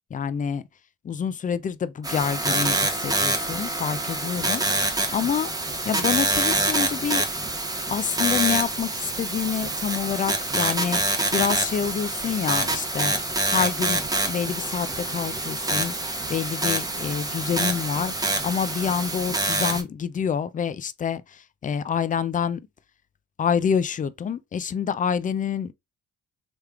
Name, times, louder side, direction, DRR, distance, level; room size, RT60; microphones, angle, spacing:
voice 1, 0.1-0.6 1.0-5.5 5.9-7.2 7.9-22.6 23.4-25.7, left 7 dB, 30° left, 0.3 m, -27 dB
sound 1, 2.0-19.8, right 2 dB, 10° right, 0.8 m, -26 dB
3.4 x 3.2 x 2.3 m
cardioid pair, 90°, 30 cm